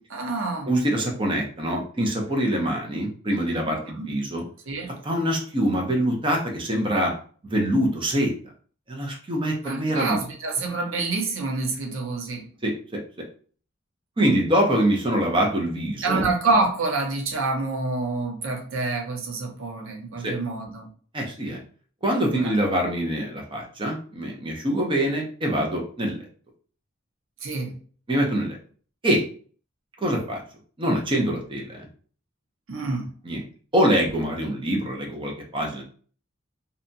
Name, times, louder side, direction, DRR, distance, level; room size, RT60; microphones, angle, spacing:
voice 1, 0.1-0.7 3.8-4.1 4.7-5.0 9.6-12.5 16.0-20.9 22.3-22.5 27.4-27.8 32.7-33.1, right 3 dB, 90° right, 1 dB, 0.7 m, -27 dB
voice 2, 0.7-4.4 5.0-7.1 7.5-8.3 8.9-10.2 12.6-12.7 14.2-16.2 20.2-20.3 21.1-21.6 22.0-26.2 28.1-28.6 29.0-29.2 30.0-30.4 30.8-31.9 33.3-33.4 33.7-35.8, equal, 25° right, 0 dB, 0.6 m, -24 dB
2.7 x 2.2 x 2.6 m, 0.44 s
head